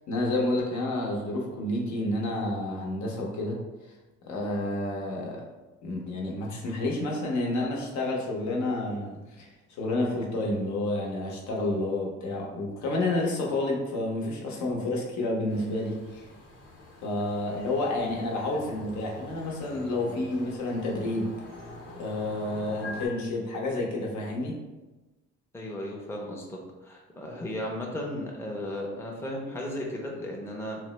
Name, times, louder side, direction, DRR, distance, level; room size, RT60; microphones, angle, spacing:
voice 1, 0.1-3.6 4.3-5.4 5.8-16.3 17.0-21.3 22.0-24.6, left 2 dB, 70° left, -2 dB, 0.8 m, -30 dB
sound 1, 15.5-23.1, left 2 dB, 40° left, 0.8 m, -45 dB
voice 2, 25.5-30.8, left 1 dB, 10° left, -1 dB, 0.5 m, -35 dB
3.2 x 2.0 x 3.0 m, 1.1 s
cardioid pair, 90°, 30 cm